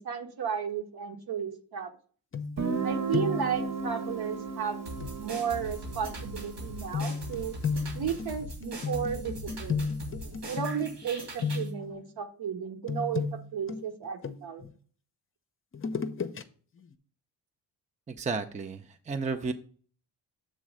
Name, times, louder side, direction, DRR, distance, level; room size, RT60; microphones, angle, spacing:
voice 1, 0.0-1.9 2.8-4.8 5.2-7.5 7.9-9.9 10.5-14.7, right 7 dB, 60° right, 4 dB, 1.3 m, -34 dB
sound 1, 2.3-2.8 3.1-3.6 5.0-5.2 6.9-11.1 11.4-11.9 12.9-14.7 15.7-16.4 16.8-16.9, left 5 dB, 30° left, 0.6 m, -33 dB
Guitar, 2.6-8.1, right 4 dB, 40° right, 1.2 m, -35 dB
sound 2, 4.9-11.7, right 1 dB, 80° right, 3.1 m, -41 dB
voice 2, 18.1-19.5, right 4 dB, 15° right, 7 dB, 0.6 m, -33 dB
7.6 x 3.1 x 6.2 m, 0.44 s
cardioid pair, 75°, 42 cm